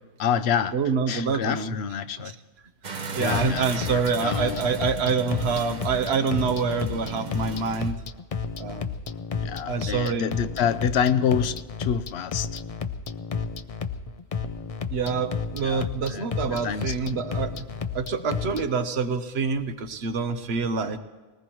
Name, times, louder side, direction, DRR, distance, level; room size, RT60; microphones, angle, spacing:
voice 1, 0.2-0.7 1.1-2.3 3.2-4.7 9.4-12.6 15.6-16.3 16.6-16.9, left 8 dB, 85° left, 13 dB, 0.9 m, -27 dB
voice 2, 0.7-1.7 3.1-8.0 8.6-8.9 9.7-10.3 14.9-17.7 17.9-21.0, right 5 dB, 80° right, 10 dB, 1.1 m, -26 dB
sound 1, 2.8-7.9, right 4 dB, 45° right, 0.9 m, -37 dB
sound 2, 3.1-18.6, left 5 dB, 45° left, 0.5 m, -32 dB
20.0 x 19.5 x 3.0 m, 1.3 s
omnidirectional pair, 1.1 m